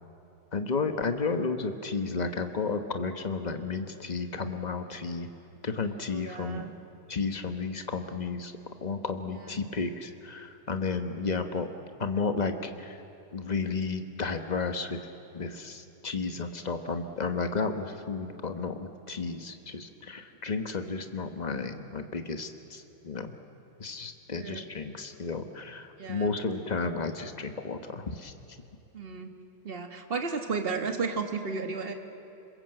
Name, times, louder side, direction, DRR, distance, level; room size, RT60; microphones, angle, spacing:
voice 1, 0.5-5.3 5.6-6.7 7.1-8.5 8.8-11.7 12.0-13.0 13.3-15.0 15.3-23.3 23.8-28.3, left 4 dB, 25° left, 7 dB, 1.0 m, -32 dB
voice 2, 6.0-6.7 9.3-9.4 11.2-11.3 24.3-24.6 26.0-26.4 28.9-29.3 29.6-31.9, right 4 dB, 30° right, 5 dB, 1.6 m, -34 dB
26.5 x 22.0 x 7.8 m, 2.9 s
omnidirectional pair, 2.2 m